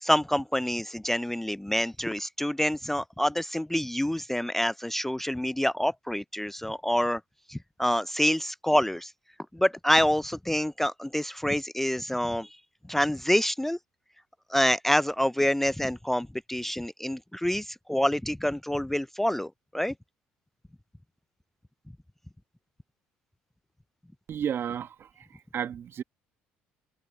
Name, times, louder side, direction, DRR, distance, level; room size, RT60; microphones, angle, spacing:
voice 1, 0.0-7.2 7.5-9.1 9.5-12.6 12.9-13.8 14.5-19.9, equal, 5° left, 0.4 m, -27 dB
voice 2, 24.3-25.3 25.5-26.0, right 8 dB, 50° right, 1.4 m, -32 dB
hypercardioid pair, 65°, 5 cm